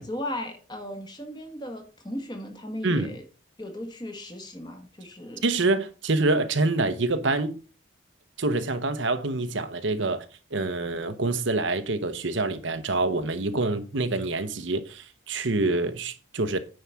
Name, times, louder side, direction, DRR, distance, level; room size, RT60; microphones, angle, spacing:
voice 1, 0.0-3.2 3.6-5.5, left 1 dB, 20° left, 1.5 m, -36 dB
voice 2, 2.8-3.1 5.4-7.6 8.4-10.3 10.5-16.6, right 2 dB, 70° right, 0.9 m, -26 dB
9.5 x 4.8 x 5.8 m
head